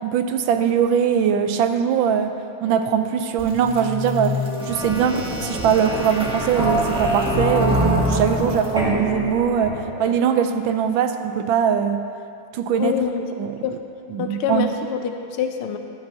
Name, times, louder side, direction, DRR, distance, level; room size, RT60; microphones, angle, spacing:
voice 1, 0.0-2.3 2.6-12.0 12.5-12.9 13.4-13.5 14.1-14.7, right 8 dB, 75° right, 7 dB, 1.3 m, -21 dB
sound 1, 3.4-10.1, equal, 5° right, 1.3 m, -24 dB
voice 2, 12.8-13.3 13.6-13.8 14.2-15.8, left 8 dB, 85° left, 6 dB, 1.6 m, -25 dB
14.0 x 11.5 x 2.8 m, 2.5 s
omnidirectional pair, 2.3 m